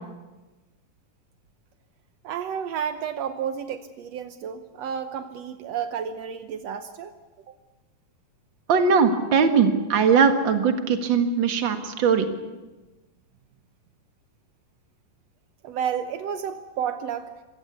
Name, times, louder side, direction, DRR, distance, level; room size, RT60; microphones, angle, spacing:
voice 1, 2.2-7.1 7.5-7.6 15.6-17.3, right 8 dB, 85° right, 9 dB, 1.4 m, -31 dB
voice 2, 8.7-12.3, right 5 dB, 45° right, 7 dB, 1.7 m, -20 dB
27.0 x 16.5 x 8.2 m, 1.2 s
omnidirectional pair, 4.2 m